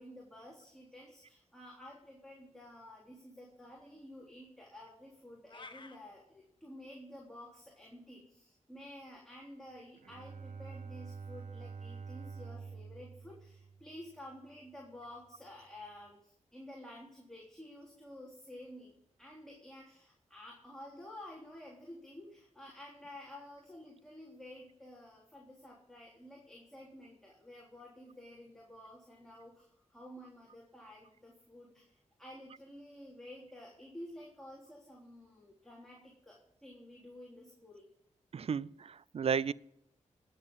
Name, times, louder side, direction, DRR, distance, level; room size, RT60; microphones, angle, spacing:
voice 1, 0.0-18.9 19.2-37.9, left 1 dB, 5° left, 3.5 m, -51 dB
sound 1, 5.5-6.0, left 3 dB, 40° left, 1.3 m, -50 dB
Bowed string instrument, 10.0-14.5, right 5 dB, 90° right, 1.0 m, -47 dB
voice 2, 38.3-39.5, right 6 dB, 50° right, 0.4 m, -33 dB
19.0 x 7.7 x 5.5 m
cardioid pair, 80°, 13 cm